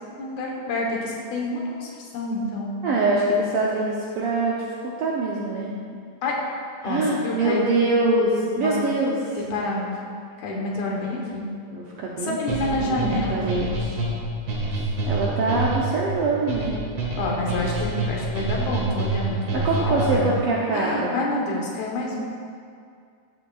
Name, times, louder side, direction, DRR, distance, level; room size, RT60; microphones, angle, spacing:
voice 1, 0.2-2.8 6.2-6.3 6.8-7.8 8.6-8.8 9.5-10.1 10.4-11.5 12.2-13.7 17.2-20.4 20.7-22.2, left 2 dB, 80° left, -2 dB, 2.5 m, -28 dB
voice 2, 2.8-5.7 6.8-9.2 11.7-12.4 12.7-14.0 14.8-16.8 17.4-17.7 19.5-21.2, right 2 dB, 75° right, -4 dB, 1.4 m, -24 dB
sound 1, 12.5-20.4, right 2 dB, 55° right, 2.6 m, -27 dB
11.5 x 7.2 x 2.3 m, 2.2 s
omnidirectional pair, 3.3 m